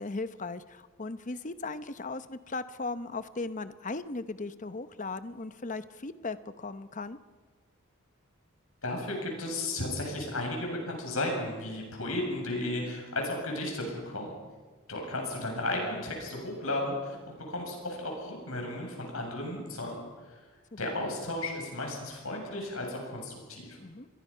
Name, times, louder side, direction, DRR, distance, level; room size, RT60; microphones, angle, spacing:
voice 1, 0.0-7.2 23.8-24.1, left 3 dB, 35° left, 12 dB, 0.8 m, -37 dB
voice 2, 8.8-14.3 14.9-17.2 17.5-20.0 20.3-20.4 20.8-23.8, left 1 dB, 75° left, 1 dB, 7.6 m, -34 dB
30.0 x 22.5 x 5.7 m, 1.4 s
head